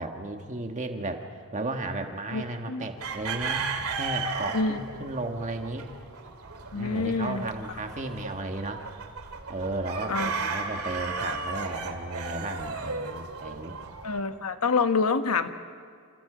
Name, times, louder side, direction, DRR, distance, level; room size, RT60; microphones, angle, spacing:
voice 1, 0.0-3.7 4.0-5.9 6.7-8.8 9.5-13.7, right 2 dB, 35° right, 4 dB, 1.6 m, -34 dB
voice 2, 2.3-2.8 4.5-4.8 6.7-7.4 10.1-10.3 14.0-15.5, left 4 dB, 90° left, 8 dB, 1.3 m, -27 dB
sound 1, 3.0-14.2, right 4 dB, 80° right, 2.3 m, -35 dB
29.5 x 28.0 x 5.1 m, 2.1 s
head